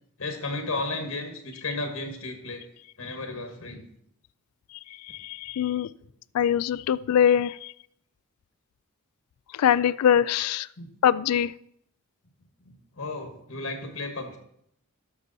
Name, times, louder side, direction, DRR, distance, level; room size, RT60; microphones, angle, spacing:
voice 1, 0.2-2.6 3.0-3.9 10.8-10.9 12.6-14.4, left 2 dB, 70° left, 5 dB, 1.5 m, -34 dB
voice 2, 5.2-5.9 6.3-7.7 9.6-10.7 11.0-11.5, left 9 dB, 90° left, 20 dB, 0.3 m, -22 dB
12.0 x 6.8 x 4.1 m, 0.74 s
head